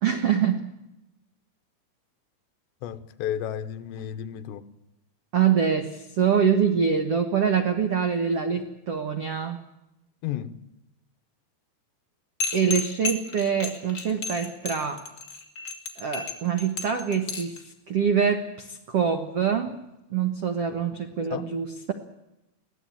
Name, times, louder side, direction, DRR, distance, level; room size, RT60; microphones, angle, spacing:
voice 1, 0.0-0.7 5.3-9.6 12.5-15.0 16.0-19.8 20.1-21.9, right 7 dB, 75° right, 1.4 m, -25 dB
voice 2, 2.8-4.6 10.2-10.6 21.3-21.5, left 10 dB, 80° left, 3.2 m, -32 dB
sound 1, 12.4-17.6, left 4 dB, 35° left, 2.4 m, -32 dB
23.0 x 16.5 x 8.7 m
omnidirectional pair, 5.1 m